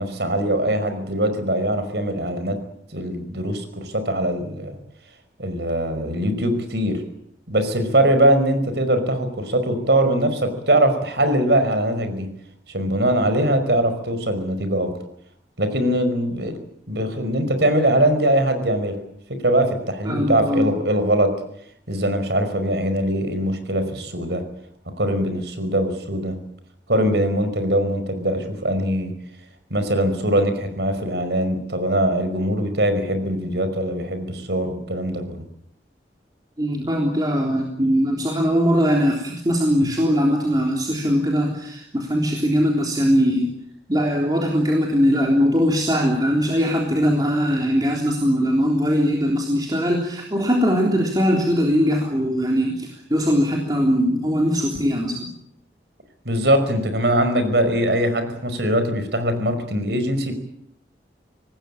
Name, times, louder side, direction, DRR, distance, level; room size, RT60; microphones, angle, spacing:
voice 1, 0.0-2.6 2.9-4.7 5.4-7.0 7.5-12.3 12.7-14.9 15.6-16.6 16.9-19.0 19.3-21.3 21.9-24.4 25.0-26.4 26.9-29.1 29.7-35.4 39.8-39.9 56.3-60.3, right 1 dB, 70° right, 9 dB, 5.3 m, -22 dB
voice 2, 20.1-20.7 36.6-43.5 43.9-55.3, equal, 20° right, 0 dB, 3.6 m, -20 dB
26.0 x 19.0 x 8.9 m, 0.71 s
head